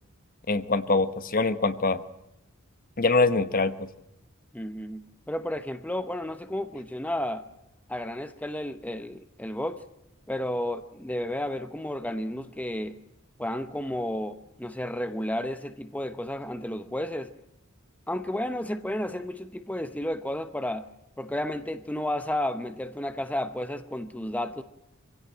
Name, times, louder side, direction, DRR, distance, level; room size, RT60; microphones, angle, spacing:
voice 1, 0.5-2.0 3.0-3.9, left 3 dB, 40° left, 12 dB, 1.1 m, -24 dB
voice 2, 4.5-7.4 7.9-9.9 10.3-13.0 13.4-17.3 18.1-20.9 21.2-24.6, left 1 dB, 5° left, 10 dB, 0.9 m, -32 dB
25.0 x 16.5 x 9.0 m, 0.90 s
head